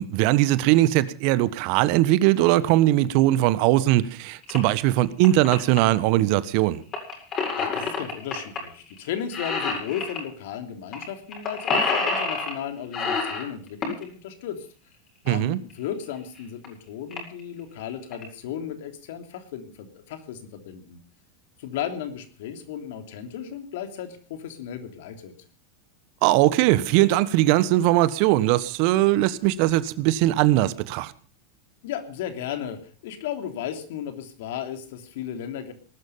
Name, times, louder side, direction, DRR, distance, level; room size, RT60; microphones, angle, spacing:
voice 1, 0.0-6.8 15.3-15.6 26.2-31.1, right 15 dB, 55° right, 1.3 m, -20 dB
sound 1, 4.4-4.6 5.0-5.8 6.9-8.6 8.9-9.1 9.3-10.2 10.9-11.0 11.3-12.6 12.9-14.0 15.7-15.8 16.4-16.5 16.6-16.7 17.1-17.4 17.9-18.2, left 4 dB, 35° left, 8.0 m, -27 dB
voice 2, 7.6-14.7 15.3-21.0 21.6-25.3 31.8-35.7, left 9 dB, 65° left, 3.2 m, -35 dB
19.5 x 12.0 x 5.6 m
hypercardioid pair, 90°, 0 cm